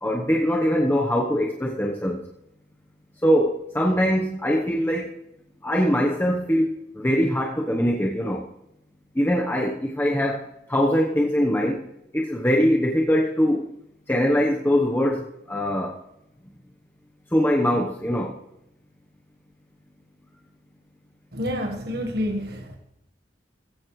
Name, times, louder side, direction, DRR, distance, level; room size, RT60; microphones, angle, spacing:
voice 1, 0.0-2.2 3.2-5.1 5.6-6.7 7.0-8.4 9.1-10.4 10.7-11.8 12.1-13.7 14.1-16.0 17.3-18.3, equal, 10° left, -1 dB, 1.1 m, -22 dB
voice 2, 21.3-22.8, equal, 60° right, 3 dB, 1.6 m, -28 dB
16.0 x 15.5 x 3.3 m, 0.82 s
head